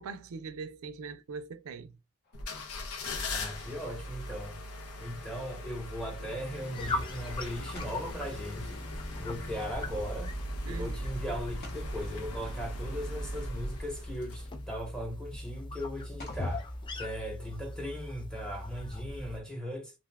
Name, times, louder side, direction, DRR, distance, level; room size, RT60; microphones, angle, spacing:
voice 1, 0.0-1.9 10.7-11.0, right 5 dB, 70° right, 0.4 m, -41 dB
sound 1, 2.2-3.1 7.2-7.3 7.7-9.5 11.6-13.2 14.5-14.6 16.2-17.8, left 1 dB, 50° left, 0.7 m, -54 dB
sound 2, 2.3-14.8 15.3-15.4, left 1 dB, 85° left, 0.7 m, -40 dB
voice 2, 3.3-4.6 5.0-8.8 9.2-10.3 10.6-16.6 16.9-19.9, equal, 5° left, 0.8 m, -38 dB
sound 3, 6.7-19.4, left 1 dB, 20° left, 0.3 m, -40 dB
2.5 x 2.3 x 3.3 m
head